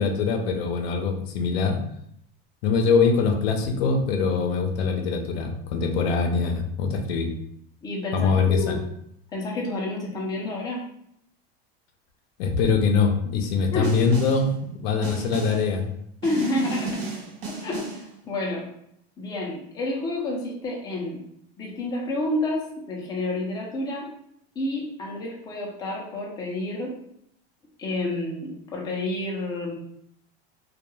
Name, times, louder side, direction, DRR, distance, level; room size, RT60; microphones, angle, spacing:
voice 1, 0.0-1.8 2.6-7.3 8.1-8.8 12.4-15.9, left 5 dB, 80° left, 4 dB, 0.6 m, -23 dB
voice 2, 7.8-8.9 9.3-10.8 13.7-14.0 16.2-17.1 17.5-18.7 19.2-21.2 21.6-24.1 24.6-26.9 27.8-29.8, left 1 dB, 15° left, -3 dB, 0.4 m, -29 dB
Snare drum, 13.8-14.5 15.0-15.7 16.2-18.1, right 3 dB, 75° right, 0.9 m, -35 dB
2.3 x 2.2 x 3.0 m, 0.73 s
supercardioid pair, 140°, 30 cm